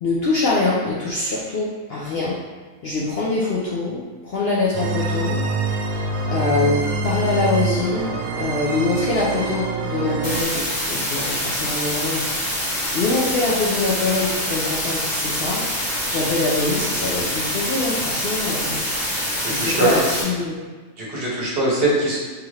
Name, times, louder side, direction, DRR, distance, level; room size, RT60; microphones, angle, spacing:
voice 1, 0.0-2.4 2.8-5.4 6.3-12.2 12.9-15.6 16.1-18.8 19.5-20.6, left 3 dB, 60° left, -6 dB, 0.7 m, -24 dB
sound 1, 4.7-10.4, right 3 dB, 80° right, 1.1 m, -25 dB
sound 2, 10.2-20.2, equal, 20° left, 0.6 m, -25 dB
voice 2, 19.4-20.0 21.0-22.2, right 2 dB, 50° right, -5 dB, 1.0 m, -22 dB
4.7 x 2.5 x 3.1 m, 1.4 s
omnidirectional pair, 1.4 m